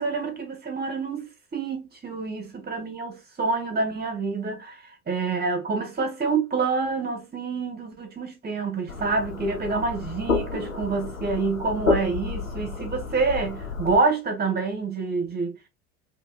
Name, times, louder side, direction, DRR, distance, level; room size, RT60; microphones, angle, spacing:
voice 1, 0.0-15.7, right 4 dB, 25° right, 1.9 m, -27 dB
sound 1, 8.9-14.0, left 4 dB, 85° left, 0.9 m, -30 dB
5.3 x 2.9 x 2.4 m
figure-of-eight pair, 70°, 39 cm